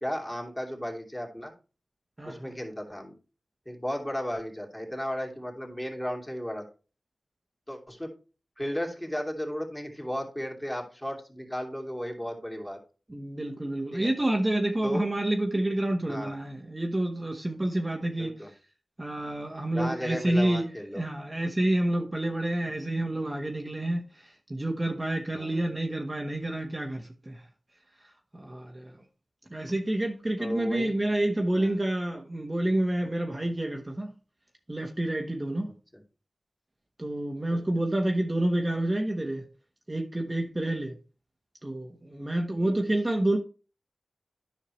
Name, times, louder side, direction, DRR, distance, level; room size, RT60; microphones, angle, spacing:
voice 1, 0.0-1.5 2.3-3.1 3.7-6.6 7.7-8.1 8.6-12.8 13.9-14.1 14.8-15.0 16.1-16.4 18.1-18.5 19.7-21.0 25.3-25.6 30.4-31.0 31.5-31.8 42.5-42.7, equal, 15° left, 2.7 m, -34 dB
voice 2, 2.2-2.5 13.1-18.3 19.0-27.4 28.3-28.9 29.5-34.1 34.7-35.7 37.0-39.4 39.9-40.9 41.6-43.4, right 1 dB, 25° right, 1.2 m, -29 dB
9.9 x 5.7 x 3.2 m
cardioid pair, 40°, 0 cm